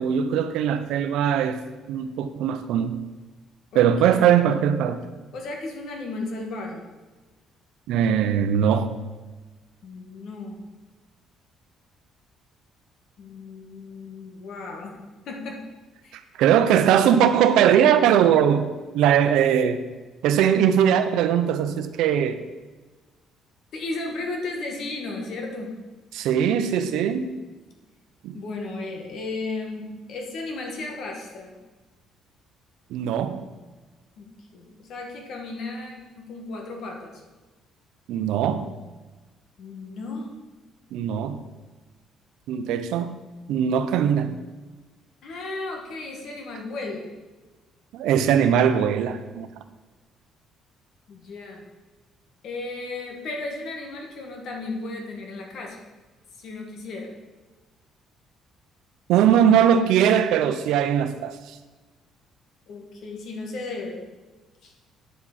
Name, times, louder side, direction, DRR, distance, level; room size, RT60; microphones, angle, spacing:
voice 1, 0.0-1.6 1.9-3.0 3.7-5.0 7.9-8.9 16.1-19.8 20.2-22.4 26.1-27.3 28.2-28.4 32.9-33.4 38.1-38.7 40.9-41.4 42.5-43.2 43.5-44.4 47.9-49.5 59.1-61.4, right 9 dB, 85° right, 10 dB, 0.7 m, -20 dB
voice 2, 3.7-4.5 5.3-6.8 9.8-10.7 13.2-15.0 15.3-15.6 16.0-16.1 23.7-25.7 28.3-31.5 34.2-37.2 39.6-40.4 45.2-47.0 51.1-51.6 52.4-55.8 56.4-57.1 62.7-64.0 64.6-64.7, left 3 dB, 60° left, 1 dB, 1.8 m, -35 dB
9.2 x 7.4 x 4.2 m, 1.3 s
cardioid pair, 130°, 0 cm